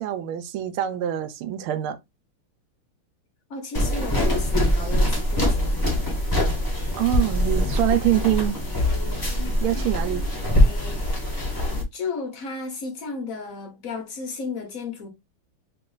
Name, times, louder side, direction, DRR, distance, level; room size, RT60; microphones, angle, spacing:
voice 1, 0.0-2.0 7.0-8.6 9.6-10.3, right 12 dB, 80° right, 1.4 m, -25 dB
voice 2, 3.5-6.2 10.5-11.1 11.9-15.1, left 4 dB, 70° left, 0.8 m, -34 dB
sound 1, 3.7-11.8, left 1 dB, 25° left, 0.5 m, -23 dB
3.1 x 2.9 x 3.8 m
omnidirectional pair, 2.4 m